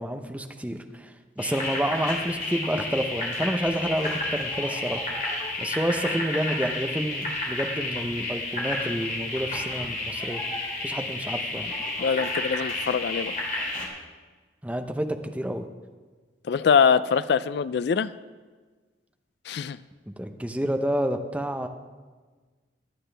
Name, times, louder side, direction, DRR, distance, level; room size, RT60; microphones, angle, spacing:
voice 1, 0.0-10.4 10.8-11.7 14.6-15.1 15.3-15.7 20.1-21.7, equal, 5° right, 5 dB, 0.7 m, -29 dB
sound 1, 1.4-13.9, left 2 dB, 45° left, 2.8 m, -31 dB
voice 2, 12.0-13.3 16.5-18.1 19.5-19.8, left 6 dB, 60° left, 16 dB, 0.3 m, -23 dB
22.5 x 9.2 x 3.4 m, 1.4 s
head